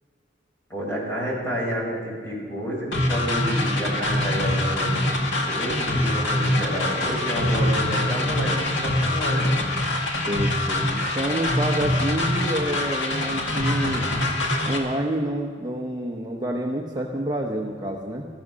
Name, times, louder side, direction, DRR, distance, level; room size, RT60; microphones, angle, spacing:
voice 1, 0.7-9.5, equal, 15° left, -4 dB, 5.6 m, -30 dB
sound 1, 2.9-14.8, left 1 dB, 90° left, 2.1 m, -24 dB
voice 2, 10.3-14.1 14.7-18.3, right 1 dB, 20° right, 0 dB, 0.9 m, -28 dB
15.0 x 14.0 x 6.3 m, 2.1 s
head